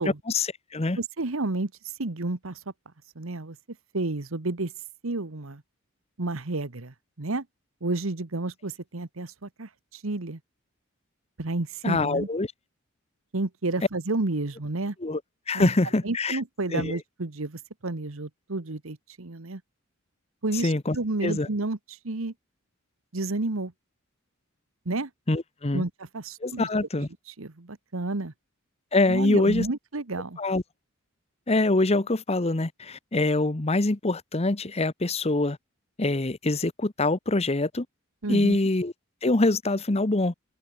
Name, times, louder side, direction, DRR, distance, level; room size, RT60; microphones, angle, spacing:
voice 1, 0.3-1.0 11.8-12.5 15.0-15.2 15.5-16.4 16.7-16.9 20.6-21.0 21.2-21.5 25.3-25.8 26.4-27.1 28.9-29.7 30.4-30.6 31.5-35.6 36.0-37.9 38.3-38.9 39.2-40.3, left 2 dB, 30° left, 1.0 m, -24 dB
voice 2, 1.0-1.7 2.0-2.6 3.1-3.6 3.9-4.7 5.0-5.6 6.2-7.4 7.8-10.4 11.4-12.3 13.3-14.9 15.5-15.7 16.0-19.6 20.4-22.3 23.1-23.7 24.8-25.1 25.7-26.7 27.4-28.3 29.1-30.4 38.2-38.6, right 2 dB, 75° right, 1.3 m, -31 dB
open air
head